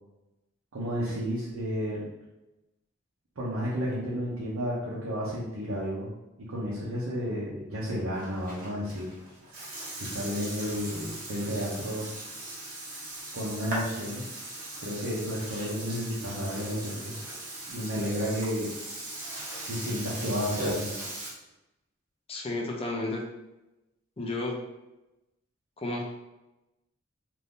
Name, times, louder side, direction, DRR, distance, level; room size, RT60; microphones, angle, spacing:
voice 1, 0.7-2.0 3.4-6.1 6.4-9.1 9.9-12.1 13.3-14.3 14.8-17.1 17.7-18.7 19.6-20.9, equal, 85° right, -7 dB, 0.7 m, -32 dB
Burping eructation, 8.1-21.3, right 1 dB, 45° right, 0.9 m, -39 dB
voice 2, 22.3-23.2 24.2-24.5 25.8-26.0, left 2 dB, 30° left, 0 dB, 0.5 m, -32 dB
2.6 x 2.6 x 3.5 m, 0.98 s
head